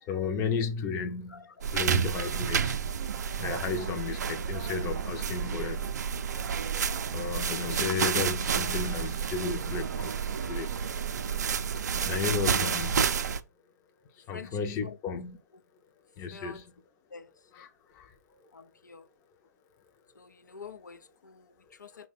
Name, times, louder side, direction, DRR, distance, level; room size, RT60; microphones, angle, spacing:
voice 1, 0.1-1.4 1.7-2.9 3.4-5.9 7.1-10.1 10.5-10.8 11.9-13.0 14.2-15.4 16.2-16.6 17.5-18.1, left 5 dB, 25° left, 0.5 m, -33 dB
voice 2, 1.3-1.6 12.4-12.8 14.3-15.0 15.5-15.6 16.3-16.7 17.1-17.5 18.5-19.1 20.1-22.1, left 5 dB, 80° left, 0.5 m, -48 dB
sound 1, 1.6-13.4, right 7 dB, 70° right, 0.4 m, -30 dB
4.6 x 2.2 x 4.0 m
figure-of-eight pair, 120°, 10 cm